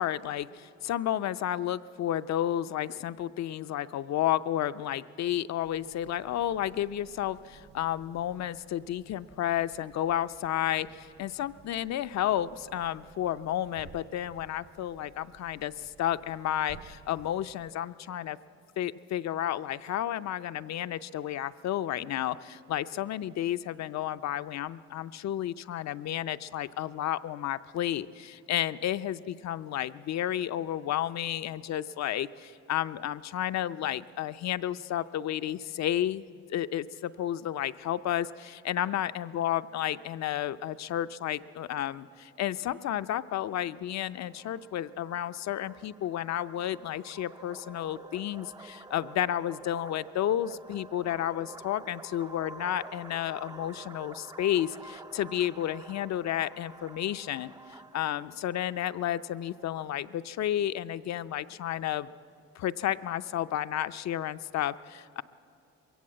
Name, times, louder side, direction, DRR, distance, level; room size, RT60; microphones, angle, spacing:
voice 1, 0.0-18.4 18.8-36.2 36.5-62.1 62.6-65.2, left 11 dB, 65° left, 13 dB, 0.6 m, -32 dB
sound 1, 5.6-17.7, right 6 dB, 65° right, 1.1 m, -56 dB
sound 2, 44.1-59.8, right 3 dB, 15° right, 0.4 m, -49 dB
22.0 x 16.5 x 7.5 m, 2.7 s
cardioid pair, 90°, 30 cm